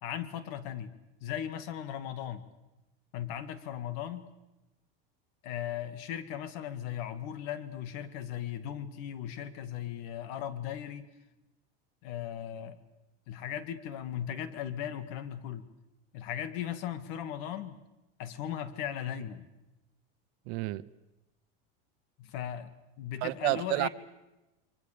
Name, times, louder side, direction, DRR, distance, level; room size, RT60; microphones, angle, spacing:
voice 1, 0.0-0.9 1.2-2.5 3.1-4.2 5.4-11.1 12.0-12.8 13.3-15.7 16.1-17.8 18.2-19.5 22.2-23.9, left 10 dB, 65° left, 2.2 m, -37 dB
voice 2, 20.5-20.8 23.2-23.9, right 23 dB, 65° right, 0.9 m, -30 dB
28.0 x 23.0 x 6.9 m
supercardioid pair, 120°, 30 cm